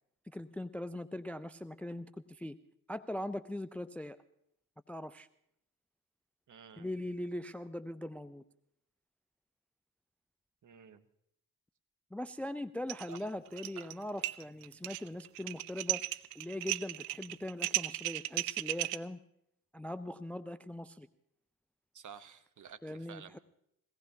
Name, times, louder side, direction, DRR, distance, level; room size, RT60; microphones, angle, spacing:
voice 1, 0.3-2.6 2.9-4.2 4.9-5.3 6.8-8.4 12.1-19.2 19.7-21.1 22.8-23.4, left 1 dB, 5° left, 15 dB, 0.5 m, -41 dB
voice 2, 6.5-6.9 10.6-11.0 13.1-13.2 13.8-13.9 21.9-23.4, right 7 dB, 45° right, 11 dB, 1.3 m, -52 dB
sound 1, 12.9-13.2 13.5-13.9 14.2-19.0, right 19 dB, 85° right, 0.6 m, -35 dB
22.5 x 18.0 x 2.9 m, 0.76 s
hypercardioid pair, 50°, 42 cm